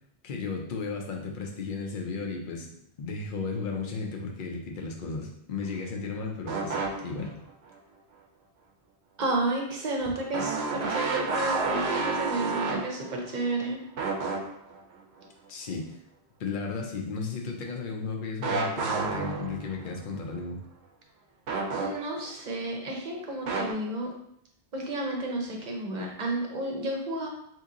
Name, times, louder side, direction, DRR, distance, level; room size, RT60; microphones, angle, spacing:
voice 1, 0.2-2.7 3.0-7.3 15.5-15.9 16.4-20.6, left 4 dB, 60° left, 1 dB, 0.8 m, -34 dB
sound 1, 6.5-7.3 7.8-7.9 10.3-13.6 14.0-14.8 18.4-19.9 21.5-22.3 23.5-23.7, right 4 dB, 90° right, 0.8 m, -30 dB
voice 2, 9.2-13.8 21.8-24.1 24.7-27.3, right 2 dB, 50° right, 0 dB, 0.8 m, -31 dB
2.9 x 2.7 x 3.7 m, 0.72 s
omnidirectional pair, 1.0 m